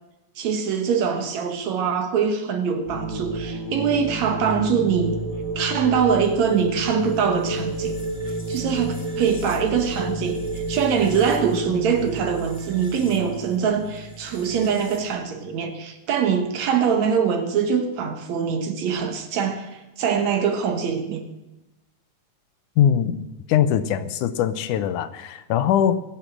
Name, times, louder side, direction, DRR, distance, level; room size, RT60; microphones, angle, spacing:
voice 1, 0.4-5.2 5.6-8.0 8.5-21.2, right 7 dB, 65° right, 2.4 m, -23 dB
sound 1, 2.8-15.1, right 2 dB, 20° left, 2.4 m, -31 dB
voice 2, 22.8-26.0, left 9 dB, 80° left, 2.3 m, -21 dB
22.0 x 7.5 x 6.1 m
omnidirectional pair, 3.5 m